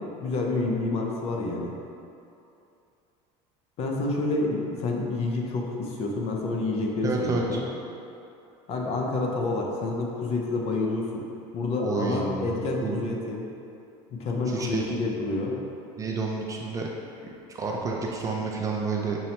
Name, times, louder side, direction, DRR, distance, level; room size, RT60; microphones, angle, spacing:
voice 1, 0.0-1.7 3.8-7.6 8.7-11.3 11.5-13.5 14.1-15.6, left 2 dB, 45° left, 0 dB, 0.5 m, -28 dB
voice 2, 7.0-7.6 11.8-12.6 12.8-13.0 14.5-15.1 16.0-16.9 17.5-19.2, right 4 dB, 25° right, -1 dB, 0.3 m, -29 dB
5.4 x 2.0 x 2.8 m, 2.7 s
supercardioid pair, 125°, 14 cm